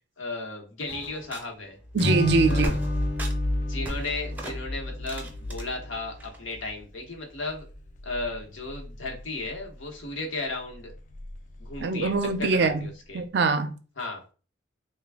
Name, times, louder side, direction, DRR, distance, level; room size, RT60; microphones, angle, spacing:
voice 1, 0.2-1.8 2.5-2.8 3.6-7.6 8.0-10.9 11.6-13.2 14.0-14.2, left 2 dB, 85° left, 1.0 m, -35 dB
sound 1, 0.9-1.7 2.0-2.1 2.3-3.5 3.7-5.6 6.2-6.6, right 1 dB, 10° right, 0.5 m, -38 dB
sound 2, 1.8-10.1 10.5-13.1, left 1 dB, 40° left, 0.4 m, -34 dB
voice 2, 1.9-2.7 11.8-12.9 13.1-13.7, right 4 dB, 60° right, 0.4 m, -23 dB
Acoustic guitar / Strum, 2.0-5.3, left 1 dB, 60° left, 0.8 m, -31 dB
3.3 x 2.2 x 3.4 m
head